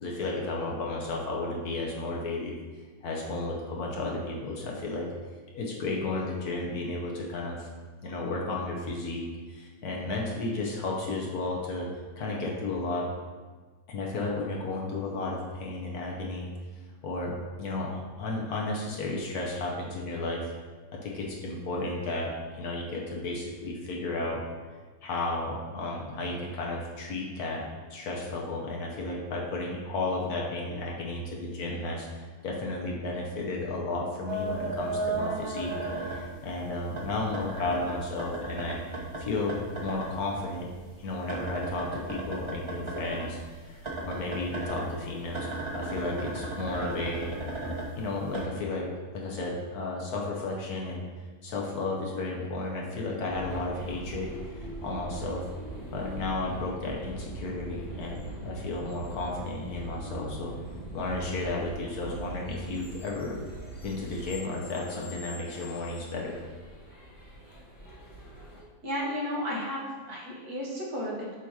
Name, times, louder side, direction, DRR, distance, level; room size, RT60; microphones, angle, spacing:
voice 1, 0.0-2.5 3.0-5.1 5.5-7.7 8.0-11.9 12.2-13.1 13.9-16.5 17.0-20.5 20.9-24.4 25.0-35.7 36.0-38.8 39.2-40.7 41.0-47.5 48.0-51.0 51.4-54.3 54.8-55.4 55.9-60.5 60.9-63.4 63.8-66.3, left 2 dB, 65° left, -2 dB, 1.2 m, -33 dB
sound 1, 34.3-36.6 36.9-40.1 40.4-43.3 43.8-48.5, right 2 dB, 40° right, 0.4 m, -35 dB
sound 2, 53.3-68.6, right 1 dB, 15° left, 0.8 m, -42 dB
voice 2, 68.8-71.3, equal, 60° right, -4 dB, 1.6 m, -33 dB
7.0 x 2.9 x 4.7 m, 1.4 s
omnidirectional pair, 1.9 m